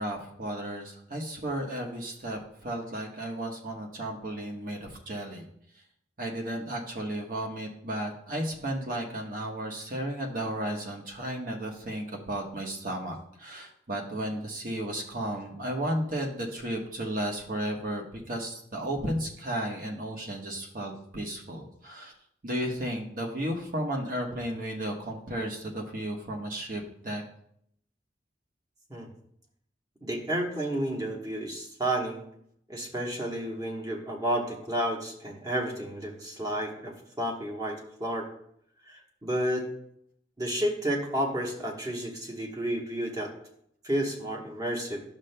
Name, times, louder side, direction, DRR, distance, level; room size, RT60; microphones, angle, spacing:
voice 1, 0.0-5.4 6.2-22.1 22.4-27.2, right 1 dB, 45° right, 1 dB, 1.2 m, -34 dB
voice 2, 30.0-32.2 32.7-38.3 38.8-39.7 40.4-43.3 43.8-45.0, right 1 dB, 20° right, 0 dB, 1.1 m, -31 dB
11.0 x 6.6 x 2.2 m, 0.72 s
head